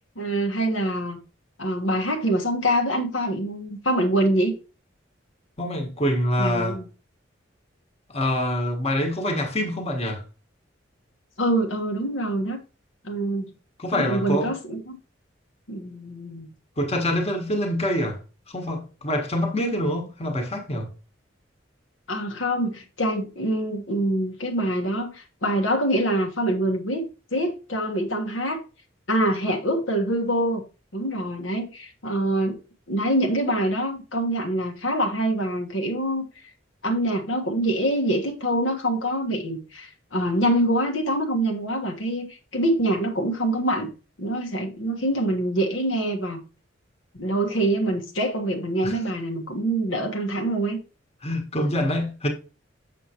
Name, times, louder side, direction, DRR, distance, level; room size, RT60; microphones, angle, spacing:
voice 1, 0.2-1.2 1.6-4.5 6.4-6.9 11.4-12.6 13.0-13.5 13.9-15.0 15.7-16.5 22.1-27.1 27.3-28.6 29.1-30.6 30.9-32.6 32.9-36.3 36.8-43.9 44.2-46.4 47.1-50.8, right 1 dB, 85° left, 1.4 m, -25 dB
voice 2, 5.6-6.8 8.1-10.2 13.8-14.5 16.8-18.2 18.5-20.9 48.8-49.0 51.2-52.3, equal, 35° left, 1.4 m, -25 dB
7.3 x 6.6 x 2.9 m
head